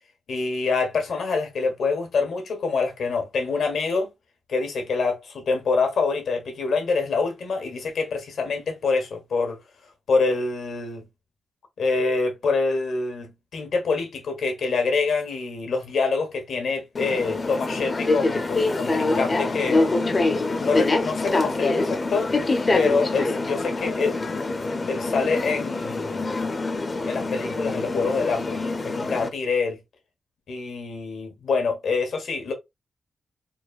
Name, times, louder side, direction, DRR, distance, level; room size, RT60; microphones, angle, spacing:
voice 1, 0.3-4.1 4.5-9.6 10.1-11.0 11.8-19.9 20.6-22.3 22.7-24.1 24.9-26.3 27.1-29.8 30.5-32.5, left 4 dB, 80° left, 1.2 m, -26 dB
sound 1, 16.9-29.3, left 2 dB, 30° left, 0.5 m, -25 dB
4.0 x 2.5 x 2.3 m
wide cardioid pair, 140°, 0 cm